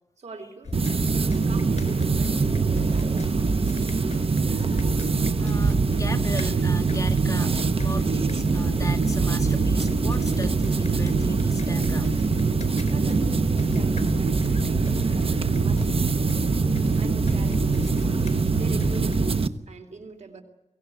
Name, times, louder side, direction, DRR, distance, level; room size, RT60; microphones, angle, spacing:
voice 1, 0.2-0.8 1.1-3.7 12.9-16.6 16.9-17.9 18.5-20.4, right 3 dB, 85° right, 5 dB, 3.3 m, -43 dB
sound 1, 0.6-19.3, left 4 dB, 85° left, 3.9 m, -36 dB
sound 2, 0.7-19.5, right 4 dB, 55° right, 1.0 m, -23 dB
voice 2, 5.4-12.1, left 2 dB, 30° left, 5 dB, 1.9 m, -37 dB
23.5 x 17.0 x 9.3 m, 1.1 s
wide cardioid pair, 65°, 12 cm